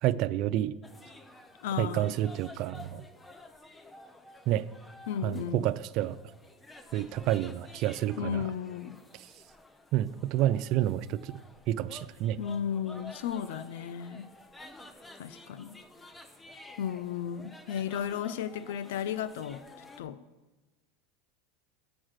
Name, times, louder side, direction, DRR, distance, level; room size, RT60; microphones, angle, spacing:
voice 1, 0.0-0.8 1.8-3.1 4.5-4.7 5.2-6.2 6.9-8.5 9.2-9.3 9.9-11.4 11.7-12.4, right 13 dB, 55° right, 15 dB, 0.3 m, -29 dB
sound 1, 0.8-20.0, left 2 dB, 10° left, 0.6 m, -51 dB
voice 2, 1.6-2.2 5.1-5.7 8.2-9.0 12.4-14.3 15.2-15.8 16.8-20.3, left 8 dB, 80° left, 15 dB, 0.4 m, -34 dB
7.3 x 6.1 x 6.4 m, 1.1 s
supercardioid pair, 120°, 0 cm